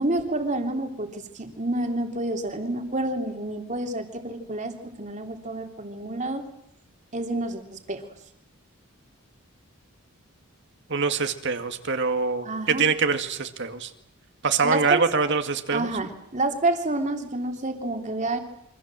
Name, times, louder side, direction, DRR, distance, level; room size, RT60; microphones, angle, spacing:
voice 1, 0.0-6.4 7.1-8.0 12.4-12.8 14.6-15.3 15.7-18.4, right 2 dB, 35° right, 5 dB, 3.1 m, -28 dB
voice 2, 10.9-13.9 14.4-15.9, right 5 dB, 55° right, 7 dB, 2.2 m, -24 dB
28.5 x 25.0 x 7.7 m, 0.78 s
head